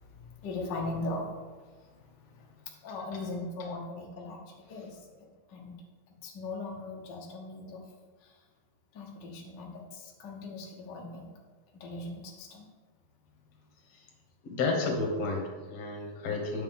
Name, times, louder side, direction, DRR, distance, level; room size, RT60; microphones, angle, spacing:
voice 1, 0.2-1.2 2.8-4.4 4.7-4.9 5.5-5.7 6.2-7.8 8.9-11.3 11.7-12.7, left 2 dB, 85° left, -1 dB, 0.9 m, -39 dB
voice 2, 14.4-16.6, left 3 dB, 60° left, 0 dB, 2.3 m, -31 dB
9.3 x 6.6 x 3.7 m, 1.3 s
omnidirectional pair, 3.8 m